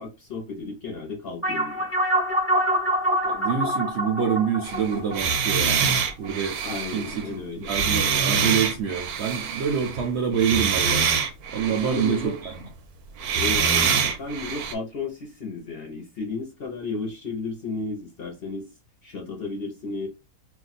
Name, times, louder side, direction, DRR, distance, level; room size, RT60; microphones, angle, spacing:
voice 1, 0.0-1.9 6.6-7.8 11.7-12.4 13.3-18.7 19.0-20.1, left 3 dB, 50° left, 0.8 m, -33 dB
sound 1, 1.4-6.3, right 1 dB, 15° left, 0.4 m, -25 dB
voice 2, 3.2-6.6 6.9-7.3 7.6-11.1 11.5-12.7, right 7 dB, 60° right, 0.7 m, -26 dB
sound 2, 4.6-10.1 10.3-12.4 13.2-14.7, right 6 dB, 80° right, 1.1 m, -25 dB
2.5 x 2.3 x 4.0 m
omnidirectional pair, 1.6 m